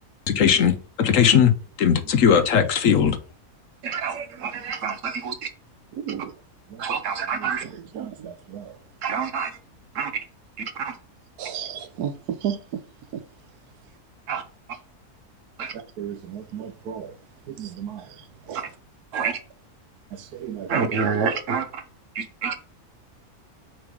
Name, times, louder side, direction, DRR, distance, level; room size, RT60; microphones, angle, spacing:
voice 1, 0.3-1.5 1.8-3.2, left 7 dB, 65° left, 1.0 m, -18 dB
voice 2, 3.8-5.5 6.8-7.6 9.0-9.5 9.9-10.1 10.6-10.9 14.3-14.4 15.6-15.7 19.1-19.4 20.7-21.8 22.2-22.6, right 6 dB, 60° right, 1.1 m, -27 dB
voice 3, 7.3-8.7 11.4-12.1 12.4-12.6 16.0-17.1 17.5-18.0 18.5-18.6 19.1-19.3 20.3-20.9, right 9 dB, 85° right, 1.3 m, -33 dB
6.0 x 3.2 x 5.0 m
omnidirectional pair, 1.6 m